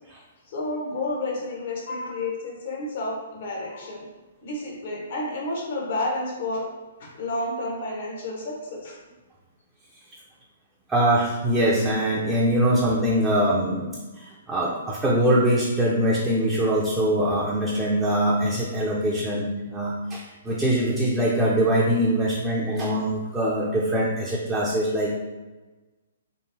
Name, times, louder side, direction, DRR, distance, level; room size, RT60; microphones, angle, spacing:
voice 1, 0.5-4.0 4.4-6.7 7.0-9.0, left 2 dB, 55° left, -2 dB, 0.9 m, -30 dB
voice 2, 10.9-25.1, right 1 dB, 10° right, -5 dB, 0.5 m, -23 dB
3.2 x 2.9 x 2.6 m, 1.2 s
figure-of-eight pair, 120°, 0 cm